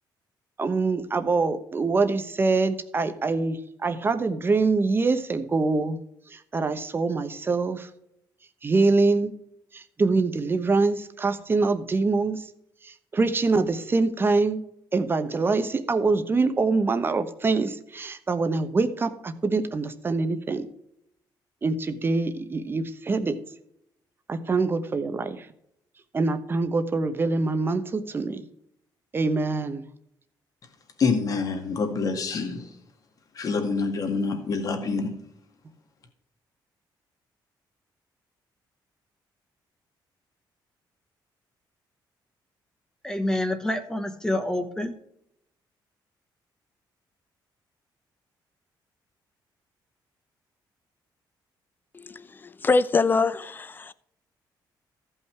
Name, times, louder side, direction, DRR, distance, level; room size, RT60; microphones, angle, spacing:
voice 1, 0.6-6.0 6.3-7.9 8.6-9.3 9.7-12.4 13.1-14.6 14.9-20.7 21.6-23.4 24.3-25.4 26.1-28.4 29.1-29.8, right 3 dB, 25° right, 1.0 m, -24 dB
voice 2, 31.0-32.7 33.4-35.1, left 4 dB, 45° left, 2.0 m, -26 dB
voice 3, 43.0-45.0, left 1 dB, 10° left, 0.9 m, -27 dB
voice 4, 51.9-53.9, left 4 dB, 25° left, 0.5 m, -24 dB
14.5 x 5.6 x 4.6 m
cardioid pair, 130°, 8 cm